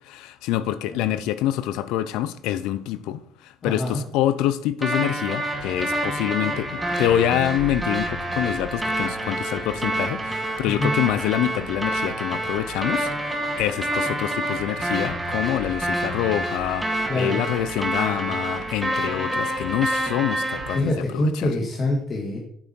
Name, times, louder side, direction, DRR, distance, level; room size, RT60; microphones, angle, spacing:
voice 1, 0.0-21.5, left 12 dB, 75° left, 0.7 m, -26 dB
voice 2, 3.6-4.0 10.7-10.9 17.1-17.4 20.7-22.4, left 1 dB, 40° left, 2.2 m, -25 dB
sound 1, 4.8-20.8, right 1 dB, 15° right, 2.8 m, -27 dB
9.0 x 7.4 x 4.5 m
hypercardioid pair, 65°, 0 cm